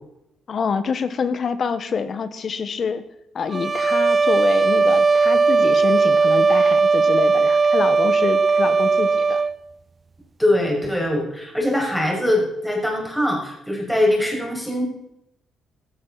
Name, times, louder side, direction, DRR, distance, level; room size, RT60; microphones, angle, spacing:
voice 1, 0.5-3.0 3.3-9.4, left 5 dB, 50° left, 12 dB, 1.5 m, -26 dB
sound 1, 3.5-9.6, right 4 dB, 35° right, 0.4 m, -18 dB
voice 2, 10.4-14.8, left 1 dB, ahead, -1 dB, 6.5 m, -22 dB
15.5 x 15.0 x 4.3 m, 0.82 s
cardioid pair, 90°, 0 cm